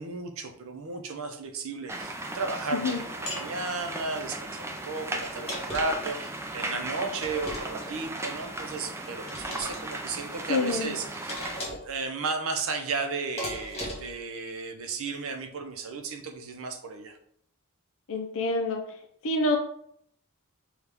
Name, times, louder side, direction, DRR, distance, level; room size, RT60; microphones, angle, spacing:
voice 1, 0.0-17.2, right 4 dB, 65° right, 5 dB, 0.6 m, -34 dB
sound 1, 1.9-11.6, right 2 dB, 10° right, 0.4 m, -37 dB
sound 2, 3.3-3.5 5.2-6.1 7.2-8.0 9.3-9.8 11.3-11.9 13.4-14.2, equal, 30° left, 1.5 m, -37 dB
voice 2, 10.5-10.9 18.1-18.8 19.2-19.6, left 2 dB, 65° left, 4 dB, 0.5 m, -26 dB
5.7 x 2.4 x 3.4 m, 0.67 s
head